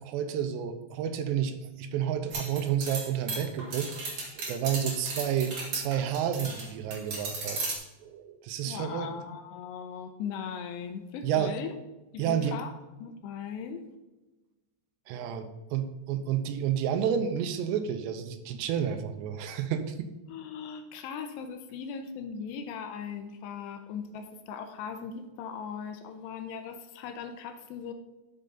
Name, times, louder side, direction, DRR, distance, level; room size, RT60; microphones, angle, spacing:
voice 1, 0.0-7.6 8.0-9.1 11.2-11.5 12.2-12.6 15.1-20.1, right 9 dB, 85° right, 8 dB, 2.8 m, -30 dB
sound 1, 2.3-6.7 6.9-7.7, right 3 dB, 55° right, 1.6 m, -35 dB
voice 2, 8.6-11.7 12.1-12.7 13.0-13.8 20.3-27.9, left 7 dB, 85° left, 7 dB, 2.6 m, -39 dB
12.0 x 5.4 x 3.8 m, 1.1 s
omnidirectional pair, 5.1 m